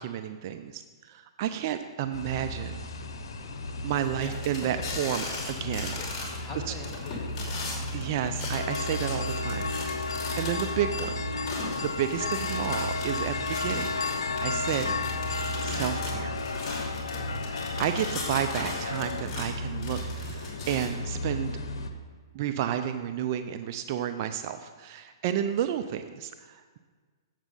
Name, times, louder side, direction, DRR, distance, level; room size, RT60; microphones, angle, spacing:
voice 1, 0.0-2.8 3.8-6.0 6.7-6.8 7.5-7.6 7.9-11.2 11.8-13.9 14.2-14.9 15.6-16.4 17.5-21.5 22.3-26.8, right 10 dB, 45° right, 8 dB, 0.5 m, -31 dB
sound 1, 2.1-21.9, left 1 dB, 70° left, 1.0 m, -36 dB
sound 2, 4.2-6.4 6.7-11.0 11.4-19.5 19.8-20.9, left 3 dB, 35° left, 2.7 m, -38 dB
voice 2, 6.0-7.7 17.1-17.4, left 1 dB, 10° left, -3 dB, 1.9 m, -42 dB
sound 3, 8.5-19.2, left 4 dB, 90° left, 0.5 m, -33 dB
8.2 x 7.4 x 5.3 m, 1.5 s
hypercardioid pair, 130°, 2 cm